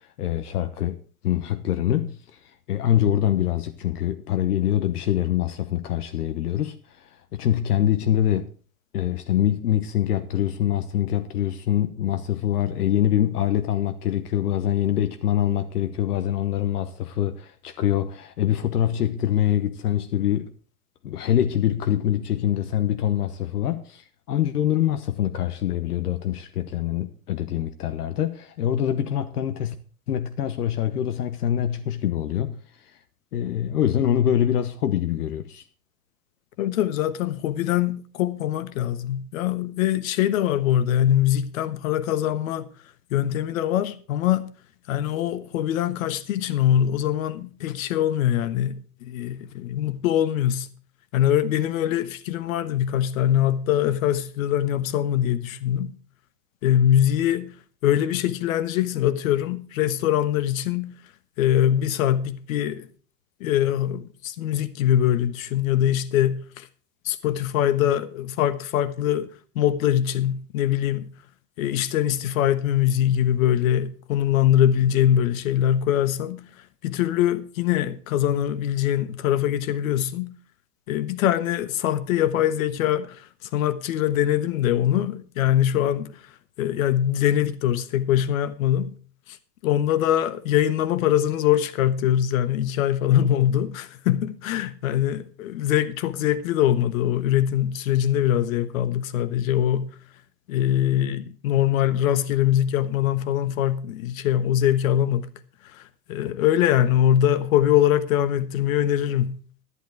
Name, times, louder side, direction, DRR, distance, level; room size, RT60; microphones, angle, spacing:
voice 1, 0.2-1.0 1.2-2.4 2.7-8.5 8.9-20.5 21.0-29.7 30.1-32.6 33.3-35.6, left 11 dB, 75° left, 1.2 m, -24 dB
voice 2, 36.6-42.7 43.1-44.4 44.9-50.7 51.1-55.9 56.6-57.5 57.8-60.9 61.4-62.9 63.4-66.7 67.0-69.3 69.5-71.1 71.6-76.4 76.8-80.3 80.9-83.2 83.5-86.1 86.6-88.9 89.6-99.9 100.5-105.3 105.7-105.8 106.1-109.4, left 11 dB, 60° left, 1.4 m, -23 dB
11.5 x 11.5 x 4.7 m
hypercardioid pair, 110°, 46 cm